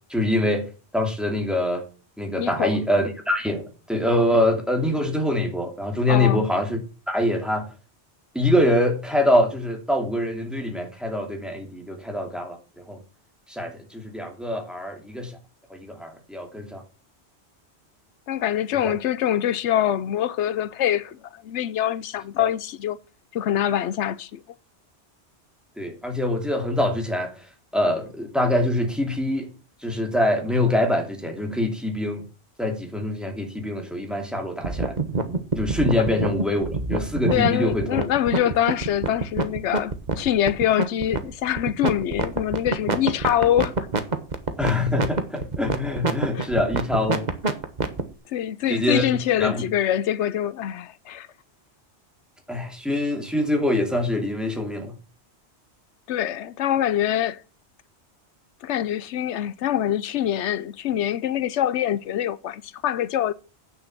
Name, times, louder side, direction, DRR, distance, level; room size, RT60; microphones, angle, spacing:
voice 1, 0.1-0.7 0.9-1.8 2.2-6.8 7.1-7.7 8.3-12.6 12.9-13.0 13.5-15.3 15.7-16.8 18.8-18.9 22.4-22.5 25.8-27.3 27.7-29.5 29.8-32.2 32.6-35.0 35.6-38.0 44.6-47.3 48.7-49.6 52.5-55.0, left 1 dB, ahead, 2.7 m, -24 dB
voice 2, 2.4-2.8 6.1-6.5 18.3-23.0 23.3-24.4 37.3-43.7 46.3-46.5 48.3-51.3 56.1-57.4 58.6-63.3, left 11 dB, 90° left, 1.0 m, -24 dB
sound 1, 34.6-48.0, right 3 dB, 40° right, 1.3 m, -25 dB
8.8 x 7.0 x 6.0 m
omnidirectional pair, 1.1 m